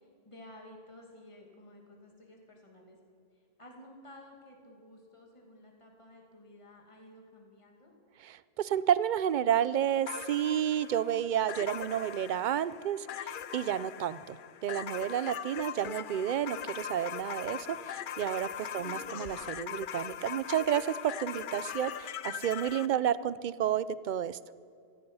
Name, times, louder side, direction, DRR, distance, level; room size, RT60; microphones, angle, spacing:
voice 1, 0.0-3.0 3.6-7.9 18.7-19.0, left 1 dB, 25° left, 0 dB, 2.4 m, -53 dB
voice 2, 8.2-24.4, right 10 dB, 55° right, 17 dB, 0.5 m, -31 dB
sound 1, 10.1-22.9, left 9 dB, 60° left, 0.6 m, -41 dB
16.0 x 13.5 x 5.5 m, 2.3 s
omnidirectional pair, 1.1 m